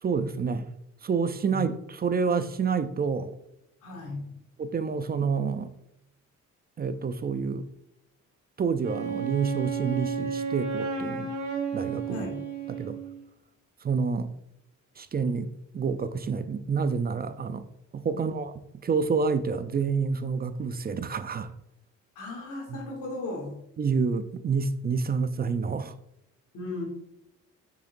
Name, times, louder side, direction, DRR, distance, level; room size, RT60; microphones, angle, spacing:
voice 1, 0.0-0.7 1.0-3.4 4.6-5.7 6.8-7.7 8.6-11.3 11.7-12.3 12.7-13.0 13.8-14.3 15.0-21.5 22.7-22.8 23.8-25.9, right 5 dB, 30° right, 0.5 m, -28 dB
voice 2, 3.8-4.4 12.1-12.4 18.1-18.4 22.1-23.6 26.5-26.8, left 2 dB, 85° left, 2.5 m, -36 dB
Wind instrument woodwind instrument, 8.8-13.2, right 6 dB, 65° right, 2.3 m, -32 dB
6.8 x 6.1 x 2.6 m
cardioid pair, 90°, 30 cm